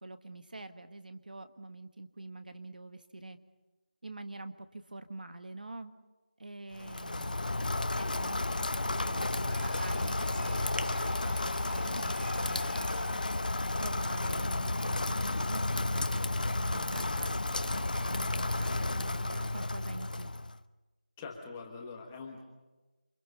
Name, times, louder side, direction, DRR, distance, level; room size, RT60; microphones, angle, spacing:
voice 1, 0.0-3.4 4.0-5.9 6.4-8.5 8.8-13.2 13.8-20.3, right 2 dB, 65° right, 9 dB, 1.6 m, -46 dB
Rain, 6.7-20.6, left 2 dB, 65° left, 0.9 m, -32 dB
sound 1, 9.5-13.3, right 1 dB, 85° right, 7.2 m, -50 dB
voice 2, 21.2-22.4, left 4 dB, 10° left, 1 dB, 1.3 m, -43 dB
28.5 x 24.5 x 5.5 m, 1.2 s
figure-of-eight pair, 175°, 5 cm